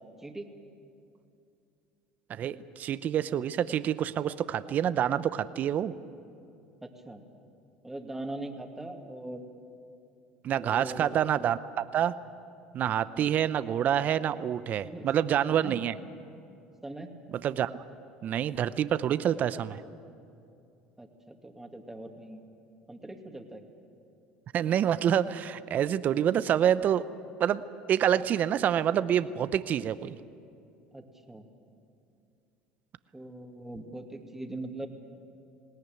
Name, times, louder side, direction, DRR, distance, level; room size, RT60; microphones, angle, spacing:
voice 1, 2.3-5.9 10.4-12.1 12.7-15.9 17.4-17.7 18.2-19.8 24.5-27.1 27.4-27.6 27.9-30.2, right 10 dB, 50° right, 15 dB, 0.7 m, -27 dB
voice 2, 6.8-7.3 7.8-9.4 10.5-11.2 13.1-13.3 14.8-15.2 15.5-15.8 16.8-17.1 21.0-22.4 22.9-23.6 30.9-31.5 33.1-34.9, right 1 dB, 10° right, 4 dB, 2.4 m, -41 dB
20.0 x 18.0 x 9.2 m, 2.5 s
supercardioid pair, 85°, 4 cm